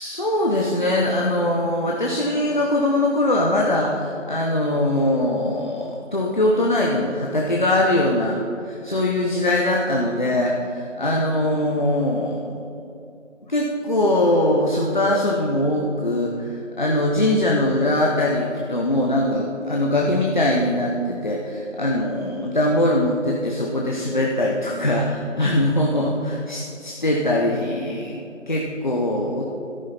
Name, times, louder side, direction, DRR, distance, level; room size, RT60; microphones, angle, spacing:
voice 1, 0.0-12.7 13.5-28.2 28.5-29.4, left 1 dB, 40° left, -1 dB, 1.1 m, -22 dB
13.5 x 12.0 x 4.3 m, 2.7 s
figure-of-eight pair, 165°, 38 cm